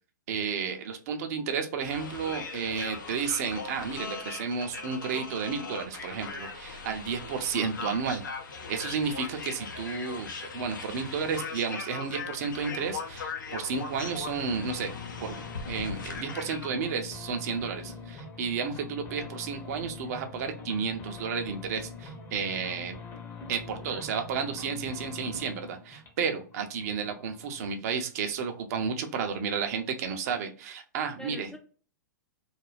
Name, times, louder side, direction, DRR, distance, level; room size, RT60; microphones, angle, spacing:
voice 1, 0.3-8.2 8.7-10.3 10.5-14.9 15.2-15.4 15.7-23.0 23.5-31.6, right 6 dB, 50° right, 6 dB, 0.6 m, -32 dB
sound 1, 1.8-16.7, left 4 dB, 75° left, 0.6 m, -39 dB
sound 2, 13.7-27.8, left 4 dB, 25° left, 0.8 m, -44 dB
voice 2, 23.0-23.5 23.8-24.0 31.2-31.6, left 1 dB, 5° left, 3 dB, 0.4 m, -46 dB
2.4 x 2.2 x 3.2 m, 0.38 s
hypercardioid pair, 110°, 11 cm